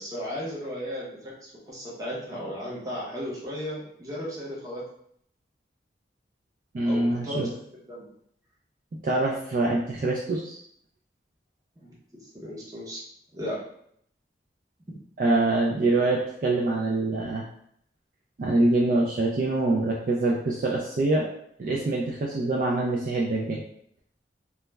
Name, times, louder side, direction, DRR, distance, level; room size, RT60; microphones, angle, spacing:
voice 1, 0.0-4.8 6.8-7.5 7.9-8.1 11.8-11.9 12.3-13.0 13.3-13.6, equal, 20° right, -5 dB, 0.7 m, -35 dB
voice 2, 6.7-7.5 9.0-10.6 15.2-17.5 18.4-21.3 21.6-23.6, right 2 dB, 50° right, -3 dB, 0.3 m, -25 dB
2.3 x 2.1 x 3.1 m, 0.68 s
head